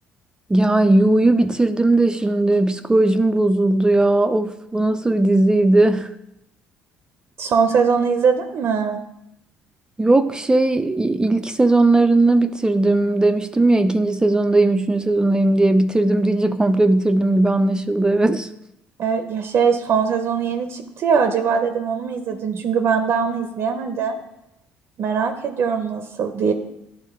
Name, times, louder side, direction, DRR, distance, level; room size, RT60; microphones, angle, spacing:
voice 1, 0.5-6.1 10.0-18.5, right 2 dB, 15° right, 0.4 m, -17 dB
voice 2, 7.4-9.0 19.0-24.2 25.0-26.5, right 6 dB, 55° right, 0.6 m, -21 dB
10.5 x 3.7 x 3.6 m
hypercardioid pair, 60°, 5 cm